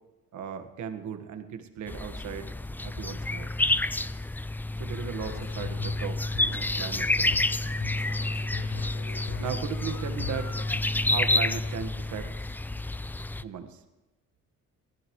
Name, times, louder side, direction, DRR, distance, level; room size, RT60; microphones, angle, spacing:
voice 1, 0.3-2.5 2.8-3.5 4.8-7.4 9.4-10.6 11.0-12.5 13.4-13.8, right 8 dB, 70° right, 7 dB, 1.6 m, -37 dB
sound 1, 1.9-13.4, left 2 dB, 5° left, 0.4 m, -29 dB
sound 2, 5.2-10.8, left 12 dB, 55° left, 0.7 m, -41 dB
22.5 x 14.5 x 3.2 m, 1.0 s
cardioid pair, 90°, 30 cm